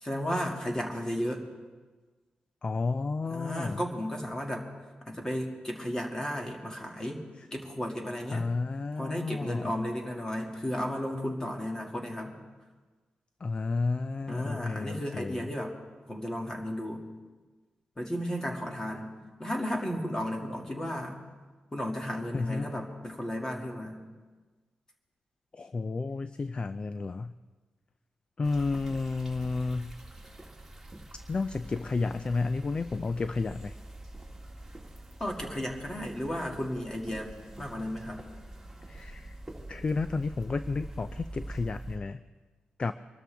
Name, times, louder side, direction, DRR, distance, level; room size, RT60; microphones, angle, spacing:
voice 1, 0.0-1.4 3.3-4.7 5.1-7.2 7.5-8.5 9.0-12.4 14.3-15.7 16.1-17.0 18.0-19.1 19.4-21.2 21.7-24.0 35.2-38.2, equal, 20° left, 1 dB, 2.2 m, -34 dB
voice 2, 2.6-3.8 7.4-7.5 8.3-9.8 13.4-15.5 22.3-22.7 25.5-27.3 28.4-30.0 31.3-33.8 38.9-39.4 39.7-42.2 42.8-42.9, left 3 dB, 35° left, 12 dB, 0.4 m, -31 dB
sound 1, 28.4-42.0, right 1 dB, 5° right, 2.1 m, -45 dB
25.0 x 13.0 x 3.5 m, 1.3 s
wide cardioid pair, 125°, 3 cm